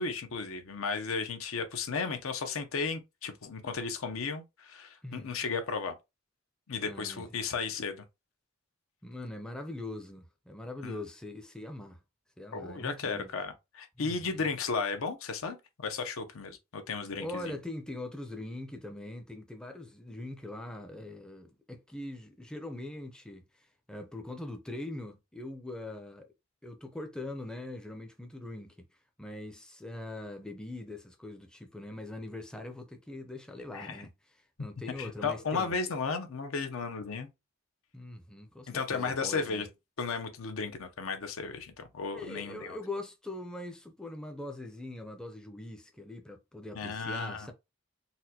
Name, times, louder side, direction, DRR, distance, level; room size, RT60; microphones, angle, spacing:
voice 1, 0.0-5.9 6.7-8.0 10.8-11.0 12.5-17.5 33.7-34.0 35.0-37.3 38.7-39.7 40.0-42.8 46.8-47.5, left 4 dB, 75° left, 0.6 m, -34 dB
voice 2, 5.0-5.4 6.8-7.2 9.0-12.0 12.4-13.3 14.0-14.5 17.1-26.3 26.6-28.8 29.2-34.1 34.6-35.7 37.9-39.6 42.1-47.5, left 2 dB, 5° left, 0.4 m, -42 dB
4.1 x 2.2 x 2.7 m
head